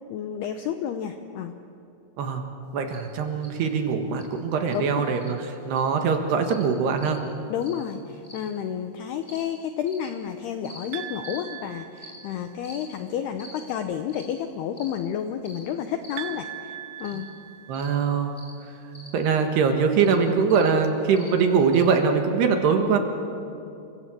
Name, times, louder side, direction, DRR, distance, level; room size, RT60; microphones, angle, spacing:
voice 1, 0.1-1.5 4.7-5.0 7.5-17.3, left 9 dB, 80° left, 7 dB, 2.3 m, -31 dB
voice 2, 2.7-7.2 17.1-17.2 17.7-18.3 19.1-23.0, right 5 dB, 65° right, 5 dB, 3.2 m, -22 dB
sound 1, 2.9-3.0 3.4-3.5 4.2-4.3 4.7-4.8 5.2-5.3 5.7-5.9 6.4-6.6 7.0-7.2 7.6-7.8 8.2-8.5 9.2-9.4 9.9-10.1 10.6-10.8 11.2-11.4 12.0-12.2 12.6-12.8 13.4-13.6 14.1-14.3 14.7-15.0 15.4-15.6 16.0-16.2 17.0-17.2 17.7-17.9 18.4-18.5 18.9-19.1 19.9-20.1 20.5-20.7 21.2-21.3 21.7-21.9, left 1 dB, ahead, 4.3 m, -46 dB
sound 2, 10.9-12.6 16.2-18.2, right 12 dB, 85° right, 3.8 m, -40 dB
29.5 x 24.5 x 7.7 m, 2.7 s
omnidirectional pair, 5.8 m